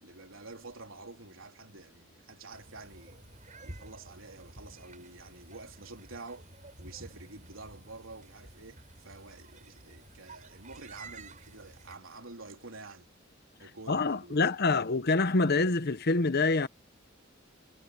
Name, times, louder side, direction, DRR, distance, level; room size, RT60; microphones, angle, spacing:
voice 1, 0.0-3.2 3.6-6.5 6.8-13.1 13.6-14.4, right 3 dB, 85° right, 3.3 m, -48 dB
sound 1, 2.5-12.0, right 2 dB, 40° right, 7.7 m, -51 dB
voice 2, 13.9-16.7, left 3 dB, 50° left, 0.9 m, -26 dB
head